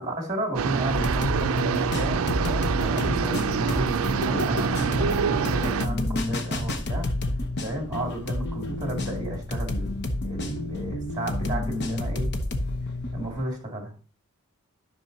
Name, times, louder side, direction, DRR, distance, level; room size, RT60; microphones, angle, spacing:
voice 1, 0.1-7.1 7.6-12.3 13.1-13.9, right 1 dB, 15° right, 1 dB, 2.4 m, -33 dB
sound 1, 0.5-5.9, right 6 dB, 70° right, 0.4 m, -26 dB
sound 2, 0.9-13.4, left 1 dB, 50° left, 0.9 m, -30 dB
10.5 x 6.0 x 2.8 m, 0.36 s
head